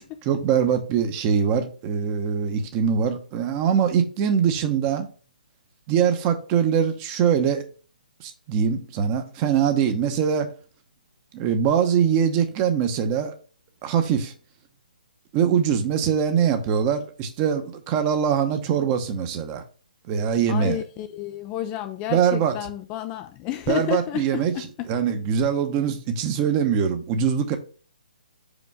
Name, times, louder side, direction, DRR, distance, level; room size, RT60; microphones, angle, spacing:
voice 1, 0.2-5.1 5.9-7.6 8.2-10.5 11.3-13.3 13.8-14.3 15.3-19.6 20.1-20.8 22.1-22.5 23.7-24.5 24.9-27.6, right 7 dB, 25° right, 0.9 m, -22 dB
voice 2, 20.5-24.9, left 12 dB, 20° left, 0.4 m, -31 dB
5.3 x 5.1 x 3.5 m
hypercardioid pair, 145°, 5 cm